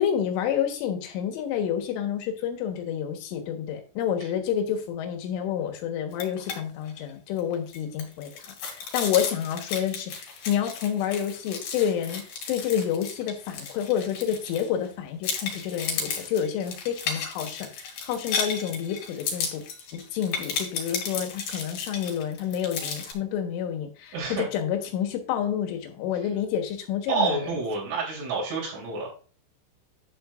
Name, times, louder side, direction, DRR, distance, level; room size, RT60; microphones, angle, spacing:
voice 1, 0.0-12.2 12.5-19.6 19.9-27.5, left 9 dB, 80° left, 5 dB, 3.8 m, -29 dB
sound 1, 6.1-6.6 6.9-7.0 7.4-14.9 15.2-23.1, left 5 dB, 60° left, 4.1 m, -34 dB
voice 2, 24.1-24.5 27.1-29.1, right 4 dB, 85° right, -5 dB, 6.2 m, -28 dB
11.0 x 7.8 x 2.5 m, 0.38 s
omnidirectional pair, 5.6 m